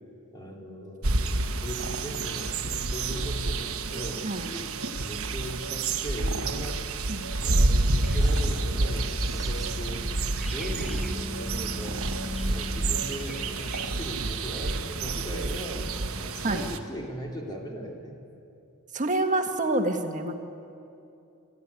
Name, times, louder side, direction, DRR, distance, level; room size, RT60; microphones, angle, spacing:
voice 1, 0.3-4.3 5.0-6.8 7.4-12.0 12.4-15.9 16.3-18.2, equal, 20° left, -1 dB, 3.3 m, -39 dB
sound 1, 1.0-16.8, right 2 dB, 70° right, 1.2 m, -29 dB
sound 2, 8.0-16.9, left 1 dB, ahead, 1.1 m, -40 dB
voice 2, 18.9-20.4, right 2 dB, 35° right, 5 dB, 1.6 m, -27 dB
25.0 x 14.5 x 9.7 m, 2.6 s
head